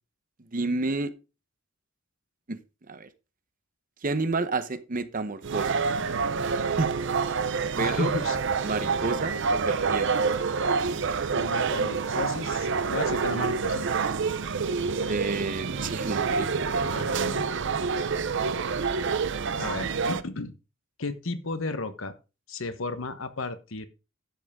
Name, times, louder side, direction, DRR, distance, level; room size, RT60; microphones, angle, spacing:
voice 1, 0.5-1.1 2.5-2.6 2.9-3.1 4.0-5.8 6.5-7.0 7.8-8.1 8.6-10.1 15.1-17.0, right 3 dB, 45° right, 12 dB, 0.9 m, -30 dB
sound 1, 5.4-20.2, right 5 dB, 65° right, 0.6 m, -27 dB
voice 2, 7.8-8.4 11.3-13.8 16.9-17.5 19.6-20.5 21.0-22.1 22.5-23.9, left 3 dB, 75° left, 11 dB, 1.2 m, -34 dB
11.5 x 7.8 x 3.6 m, 0.30 s
head